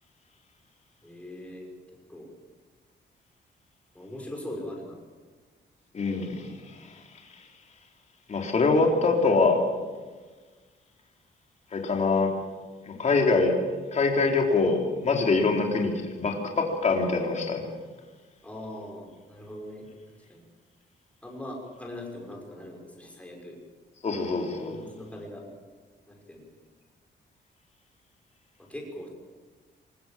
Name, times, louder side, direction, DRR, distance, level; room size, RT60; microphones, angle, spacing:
voice 1, 1.0-1.7 2.1-2.3 3.9-5.0 18.4-19.9 20.3-20.4 21.2-23.6 24.7-25.4 26.1-26.5 28.6-29.1, left 1 dB, 5° left, -1 dB, 5.8 m, -40 dB
voice 2, 5.9-6.5 8.3-9.6 11.7-12.3 12.9-13.5 13.9-17.6 24.0-24.8, left 3 dB, 40° left, 2 dB, 3.7 m, -24 dB
24.0 x 20.5 x 7.6 m, 1.4 s
wide cardioid pair, 170°, 19 cm